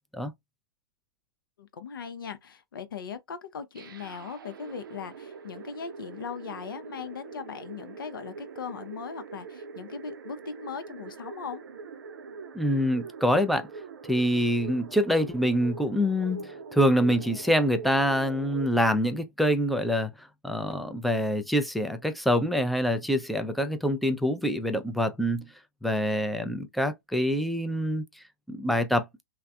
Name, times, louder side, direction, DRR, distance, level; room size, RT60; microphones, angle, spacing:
voice 1, 1.6-11.6, left 6 dB, 70° left, 0.6 m, -39 dB
sound 1, 3.7-18.7, right 5 dB, 70° right, 0.5 m, -43 dB
voice 2, 12.5-13.7 14.1-25.5 25.8-28.0 28.5-29.1, equal, ahead, 0.4 m, -25 dB
3.2 x 2.1 x 2.3 m
figure-of-eight pair, 110°, 12 cm